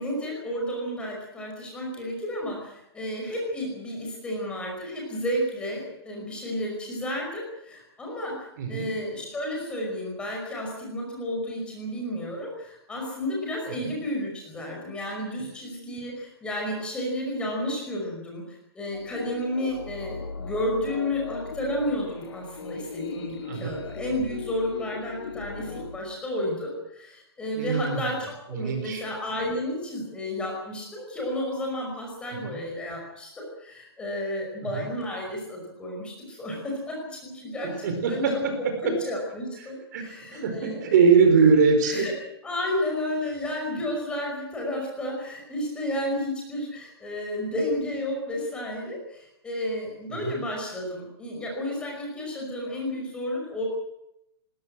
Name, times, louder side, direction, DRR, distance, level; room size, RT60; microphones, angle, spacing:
voice 1, 0.0-38.4 38.8-40.8 41.8-42.1 42.4-53.6, left 1 dB, 5° left, -1 dB, 5.5 m, -32 dB
voice 2, 8.6-8.9 13.8-13.9 23.5-23.8 27.5-28.0 28.5-29.0 32.4-32.5 34.6-34.9 37.8-38.5 39.6-42.1 50.1-50.4, right 5 dB, 45° right, 6 dB, 4.9 m, -22 dB
sound 1, 18.9-26.0, left 5 dB, 90° left, 4.2 m, -38 dB
21.0 x 18.0 x 7.8 m, 0.84 s
hypercardioid pair, 170°, 14 cm